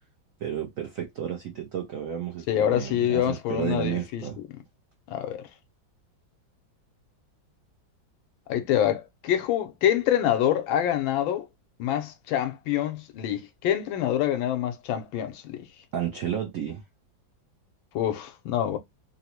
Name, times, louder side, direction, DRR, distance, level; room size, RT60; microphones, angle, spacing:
voice 1, 0.4-4.4 15.9-16.8, right 9 dB, 80° right, 0.7 m, -32 dB
voice 2, 2.5-4.3 5.1-5.5 8.5-11.5 11.8-15.6 17.9-18.8, left 11 dB, 85° left, 1.4 m, -26 dB
3.7 x 2.0 x 2.8 m
omnidirectional pair, 2.2 m